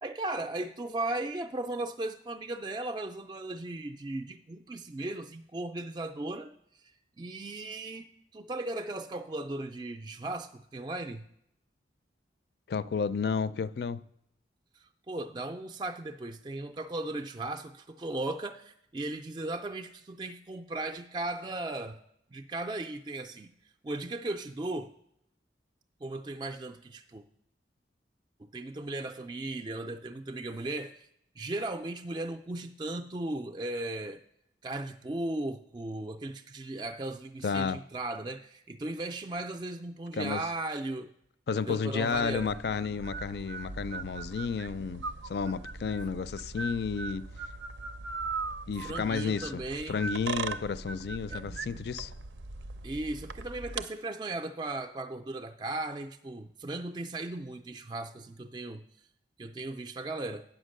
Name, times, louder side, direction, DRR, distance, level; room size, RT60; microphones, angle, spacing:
voice 1, 0.0-6.5 6.8-8.1 8.3-11.2 14.7-22.0 22.3-23.5 23.8-24.9 26.0-27.2 28.4-31.1 31.4-34.2 34.6-41.1 41.6-42.5 48.8-50.0 51.3-51.4 52.8-58.8 59.4-60.4, right 2 dB, 25° right, 0.4 m, -37 dB
voice 2, 12.7-14.0 37.4-37.8 40.2-40.4 41.5-45.0 45.3-47.3 48.7-52.1, left 5 dB, 60° left, 0.4 m, -32 dB
sound 1, 42.1-53.8, right 4 dB, 80° right, 0.6 m, -39 dB
9.0 x 5.8 x 6.4 m
head